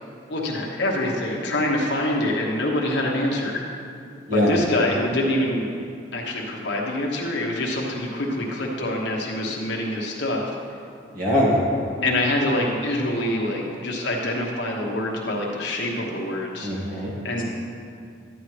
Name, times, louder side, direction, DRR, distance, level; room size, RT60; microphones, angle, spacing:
voice 1, 0.3-3.6 4.3-5.7 6.1-10.4 12.0-17.4, left 1 dB, 60° left, -2 dB, 1.1 m, -25 dB
voice 2, 11.1-11.6 16.6-17.1, left 1 dB, 45° right, -6 dB, 1.8 m, -21 dB
11.5 x 9.0 x 3.3 m, 2.4 s
head